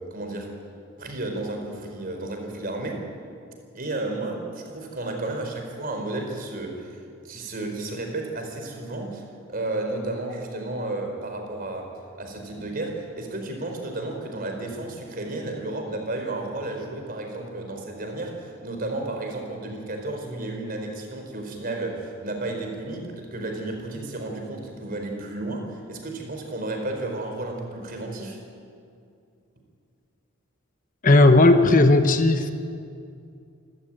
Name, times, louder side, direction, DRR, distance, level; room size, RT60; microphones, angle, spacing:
voice 1, 0.1-0.6 1.0-3.1 3.7-7.0 7.2-9.2 9.5-28.4, right 2 dB, 45° right, 3 dB, 4.4 m, -32 dB
voice 2, 31.0-32.5, left 2 dB, 40° left, 8 dB, 1.0 m, -15 dB
27.0 x 13.5 x 9.1 m, 2.4 s
head